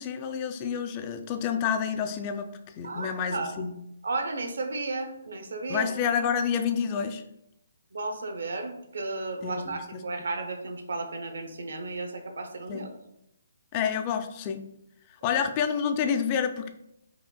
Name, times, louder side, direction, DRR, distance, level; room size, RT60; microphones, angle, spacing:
voice 1, 0.0-2.5 2.8-3.8 5.7-7.2 9.4-10.0 12.7-12.9 13.7-14.6 15.2-16.7, left 7 dB, 30° left, 8 dB, 0.3 m, -28 dB
voice 2, 2.8-3.6 4.0-5.9 7.9-12.9 15.2-15.4, right 3 dB, 75° right, 5 dB, 0.6 m, -34 dB
4.9 x 2.5 x 2.2 m, 0.81 s
hypercardioid pair, 145°, 0 cm